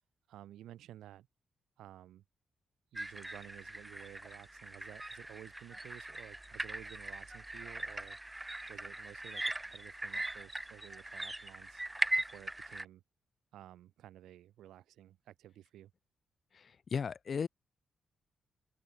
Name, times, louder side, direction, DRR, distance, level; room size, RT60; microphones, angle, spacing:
voice 1, 0.3-1.3 1.8-2.2 2.9-8.2 8.7-11.8 12.2-13.0 13.5-15.9, right 12 dB, 75° right, 5.9 m, -53 dB
sound 1, 3.0-12.9, right 1 dB, 15° right, 1.8 m, -40 dB
voice 2, 16.5-17.5, left 6 dB, 55° left, 2.7 m, -36 dB
hypercardioid pair, 45°, 0 cm